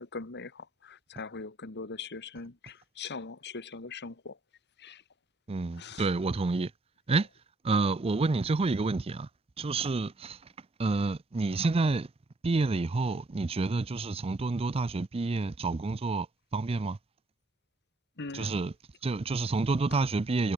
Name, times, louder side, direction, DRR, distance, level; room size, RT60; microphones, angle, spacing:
voice 1, 0.0-4.4 4.8-5.0 5.8-6.1 18.2-18.6 19.9-20.0, left 4 dB, 50° left, 1.7 m, -41 dB
voice 2, 5.5-6.7 7.1-7.3 7.6-9.3 9.6-10.4 10.8-12.1 12.4-16.3 16.5-17.0 18.3-18.7 19.0-20.5, right 3 dB, 25° right, 0.5 m, -28 dB
head